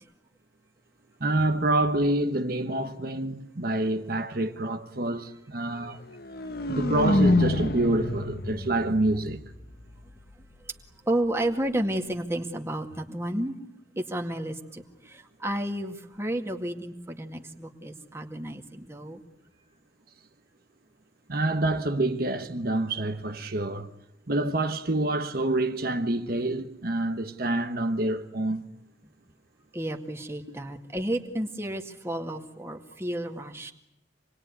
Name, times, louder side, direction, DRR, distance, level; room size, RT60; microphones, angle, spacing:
voice 1, 1.2-6.0 6.7-9.4 21.3-23.9 24.3-28.7, right 2 dB, 55° right, 1.2 m, -27 dB
sound 1, 6.1-10.1, left 1 dB, 55° left, 1.5 m, -27 dB
voice 2, 11.0-13.5 14.0-19.2 29.7-33.7, right 1 dB, 15° right, 2.1 m, -32 dB
27.5 x 21.0 x 9.6 m
head